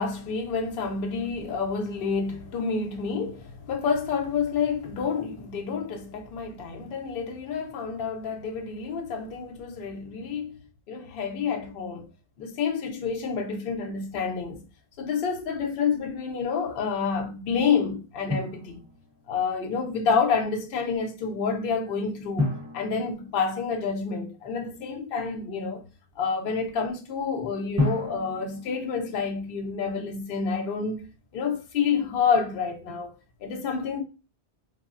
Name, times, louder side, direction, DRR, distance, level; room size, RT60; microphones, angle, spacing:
voice 1, 0.0-10.6 10.9-12.0 12.4-14.6 15.0-18.8 19.3-25.8 26.2-31.0 31.3-33.1 33.4-34.0, left 5 dB, 65° left, 0.7 m, -28 dB
Drum, 18.3-19.4 22.4-24.2 27.8-29.8, left 2 dB, 20° right, 0.6 m, -32 dB
3.3 x 2.0 x 2.4 m
omnidirectional pair, 1.1 m